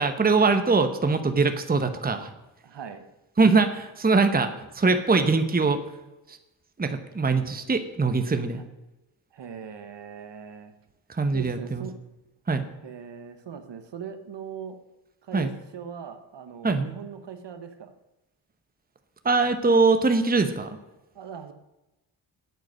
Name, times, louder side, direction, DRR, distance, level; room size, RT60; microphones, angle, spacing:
voice 1, 0.0-2.3 3.4-5.8 6.3-6.4 6.8-8.6 11.1-11.8 12.5-12.6 15.3-15.5 16.6-16.9 19.2-20.8, right 4 dB, 20° right, 8 dB, 1.0 m, -22 dB
voice 2, 2.6-3.0 8.6-8.7 9.3-10.7 11.3-12.0 12.8-14.8 15.2-15.5 15.7-17.9 21.1-21.5, right 7 dB, 60° right, 8 dB, 1.3 m, -40 dB
9.0 x 8.2 x 6.3 m, 1.0 s
cardioid pair, 70°, 48 cm